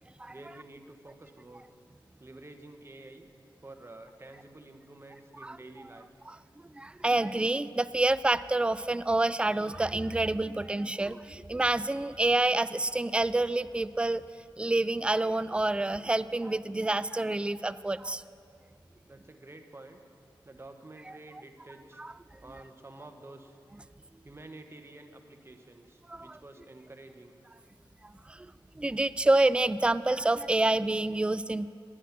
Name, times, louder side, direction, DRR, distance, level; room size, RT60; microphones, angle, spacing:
voice 1, 0.3-1.6 2.2-3.3 3.6-6.1 19.0-20.0 20.4-22.0 22.4-23.6 24.2-27.4, right 2 dB, 30° right, 6 dB, 1.1 m, -49 dB
voice 2, 6.7-14.2 14.6-18.2 22.0-22.1 26.1-26.4 28.0-31.7, right 2 dB, 10° right, 15 dB, 0.3 m, -28 dB
11.0 x 9.8 x 5.9 m, 2.5 s
cardioid pair, 50°, 9 cm